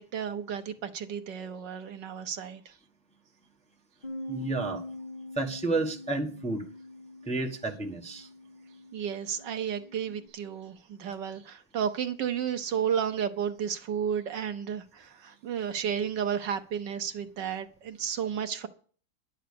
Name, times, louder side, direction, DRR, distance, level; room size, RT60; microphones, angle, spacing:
voice 1, 0.0-2.8 8.9-18.7, right 8 dB, 65° right, 1.4 m, -32 dB
Bass guitar, 4.0-10.3, left 1 dB, 25° left, 2.8 m, -44 dB
voice 2, 4.3-4.8 5.4-6.7 7.3-8.3, right 2 dB, 5° left, 1.0 m, -31 dB
11.5 x 10.0 x 6.8 m
omnidirectional pair, 2.2 m